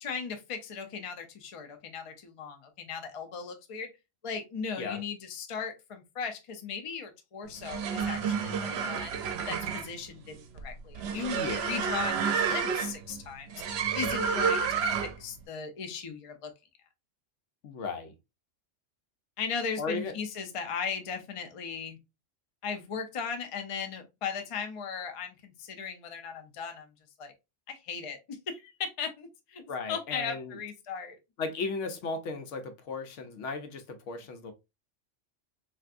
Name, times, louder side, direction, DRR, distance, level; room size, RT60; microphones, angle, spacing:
voice 1, 0.0-3.9 4.2-9.2 9.5-13.6 13.9-14.8 15.2-16.5 19.4-22.0 22.6-26.9 27.2-27.3 27.7-29.6 29.9-31.2, left 6 dB, 45° left, 0.4 m, -37 dB
sound 1, 7.5-15.3, right 6 dB, 65° right, 0.8 m, -30 dB
voice 2, 11.3-11.6 17.6-18.1 19.8-20.1 29.7-30.6 31.4-34.5, left 4 dB, 90° left, 1.0 m, -35 dB
3.3 x 2.6 x 2.4 m
omnidirectional pair, 1.2 m